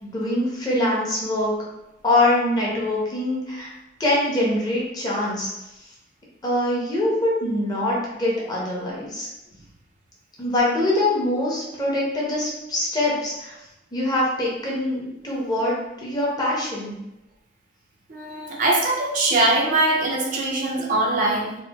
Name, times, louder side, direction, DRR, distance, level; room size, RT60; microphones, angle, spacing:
voice 1, 0.0-1.5 2.0-3.7 4.0-5.5 6.4-9.3 10.4-13.6 13.9-17.0, left 1 dB, 20° left, -5 dB, 0.6 m, -23 dB
voice 2, 18.1-21.5, right 2 dB, 45° right, 0 dB, 0.3 m, -22 dB
2.8 x 2.0 x 2.3 m, 0.92 s
head